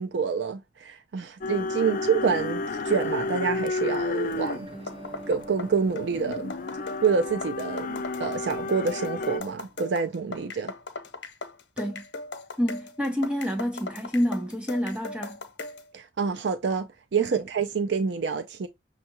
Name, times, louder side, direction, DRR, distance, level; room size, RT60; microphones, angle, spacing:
voice 1, 0.0-4.7 5.3-6.5 7.0-10.7 15.9-18.7, right 5 dB, 70° right, 0.4 m, -27 dB
sound 1, 1.4-9.4, left 3 dB, 50° left, 0.5 m, -32 dB
sound 2, 2.8-9.8, right 1 dB, 35° right, 1.3 m, -48 dB
sound 3, 4.3-15.9, left 3 dB, 85° left, 0.9 m, -39 dB
voice 2, 12.6-15.4 17.2-17.4, equal, 5° right, 0.5 m, -28 dB
6.2 x 2.3 x 2.9 m
head